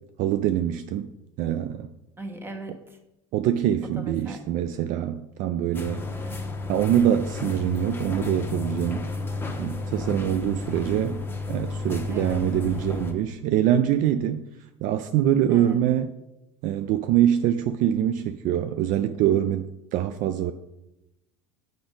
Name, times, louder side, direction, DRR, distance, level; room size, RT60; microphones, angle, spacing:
voice 1, 0.2-1.1 1.4-1.9 3.3-6.1 6.7-9.1 9.6-11.2 11.5-14.4 14.8-16.1 16.6-20.5, right 11 dB, 55° right, 9 dB, 0.4 m, -24 dB
voice 2, 2.2-3.0 4.0-4.4 6.2-6.5 12.1-12.4 15.5-15.8, right 2 dB, 15° right, 5 dB, 1.3 m, -39 dB
sound 1, 5.7-13.1, left 3 dB, 15° left, 0.9 m, -32 dB
6.9 x 5.1 x 3.9 m, 0.92 s
hypercardioid pair, 90°, 16 cm